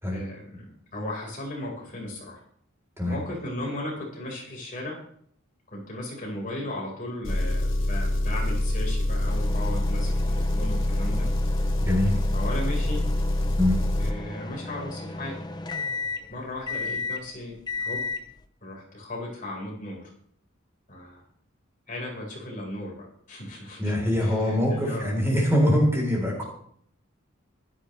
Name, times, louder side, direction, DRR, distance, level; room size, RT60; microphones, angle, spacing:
voice 1, 0.1-0.7 0.9-2.4 3.0-5.0 5.7-11.3 12.3-13.0 14.0-15.4 16.3-18.0 18.6-20.1 20.9-21.2 21.9-23.9 24.2-25.1, left 1 dB, 40° left, -2 dB, 4.5 m, -36 dB
Engine, 7.3-14.2, left 1 dB, 65° left, 1.4 m, -25 dB
sound 1, 9.3-18.5, left 3 dB, 20° left, 0.6 m, -35 dB
voice 2, 11.8-12.1 13.6-13.8 23.8-26.4, left 1 dB, 10° right, -2 dB, 3.7 m, -23 dB
16.0 x 12.5 x 3.3 m, 0.64 s
head